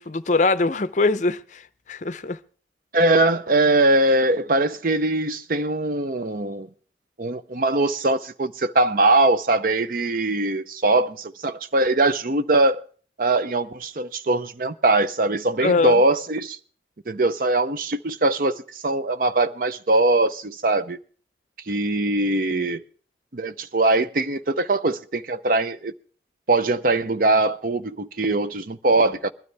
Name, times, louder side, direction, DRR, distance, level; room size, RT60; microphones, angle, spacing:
voice 1, 0.0-1.6 1.9-2.4 15.6-16.0, left 3 dB, 45° left, 0.6 m, -22 dB
voice 2, 2.9-6.7 7.2-12.8 13.2-16.6 17.1-21.0 21.7-22.8 23.3-25.9 26.5-29.3, right 2 dB, 50° right, 0.7 m, -21 dB
20.5 x 12.5 x 3.4 m
head